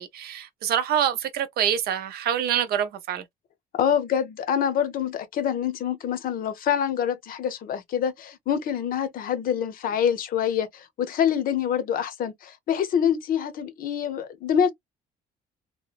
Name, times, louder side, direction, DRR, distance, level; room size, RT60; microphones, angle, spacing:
voice 1, 0.0-3.2, right 9 dB, 65° right, 0.6 m, -26 dB
voice 2, 3.7-14.7, left 8 dB, 55° left, 0.6 m, -26 dB
2.8 x 2.1 x 2.3 m
cardioid pair, 110°, 17 cm